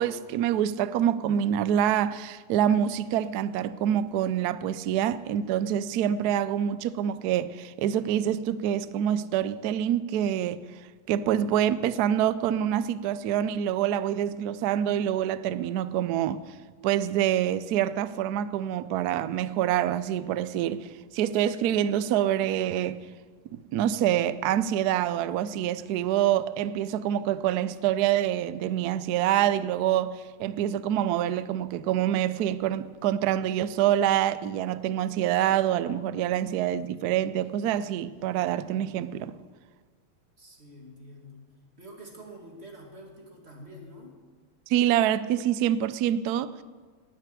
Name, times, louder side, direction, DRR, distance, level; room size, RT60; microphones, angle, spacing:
voice 1, 0.0-10.6 11.1-16.4 16.8-23.0 23.5-39.3 44.7-46.6, right 10 dB, 80° right, 0.8 m, -26 dB
voice 2, 40.4-41.4 41.8-44.2, equal, 30° right, 2.5 m, -47 dB
19.5 x 6.8 x 8.3 m
omnidirectional pair, 2.3 m